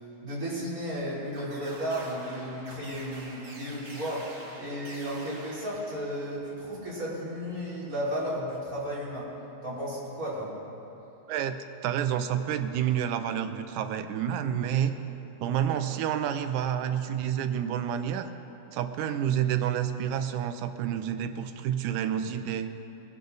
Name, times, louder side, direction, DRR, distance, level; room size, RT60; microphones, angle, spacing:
voice 1, 0.2-4.3 4.6-9.3 9.6-10.5, equal, 25° right, -8 dB, 3.8 m, -34 dB
sound 1, 1.3-6.5, right 2 dB, 50° right, 3.1 m, -47 dB
voice 2, 11.8-14.9 15.4-18.3 18.7-22.7, right 9 dB, 80° right, 9 dB, 2.0 m, -29 dB
20.5 x 10.5 x 4.0 m, 2.9 s
omnidirectional pair, 3.5 m